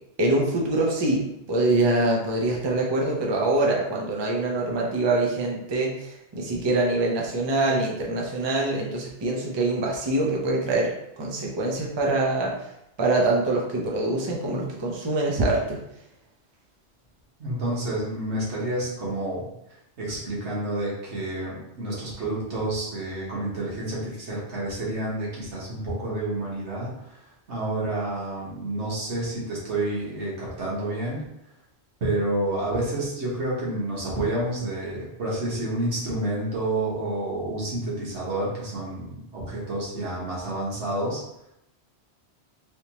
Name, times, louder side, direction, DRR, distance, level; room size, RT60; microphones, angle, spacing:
voice 1, 0.2-10.9 11.2-12.5 13.0-15.8, right 2 dB, 30° right, -2 dB, 0.5 m, -24 dB
voice 2, 17.4-19.5 20.0-27.2 27.5-31.2 32.0-41.2, right 1 dB, 80° right, -6 dB, 1.5 m, -29 dB
3.3 x 2.8 x 2.9 m, 0.83 s
omnidirectional pair, 1.2 m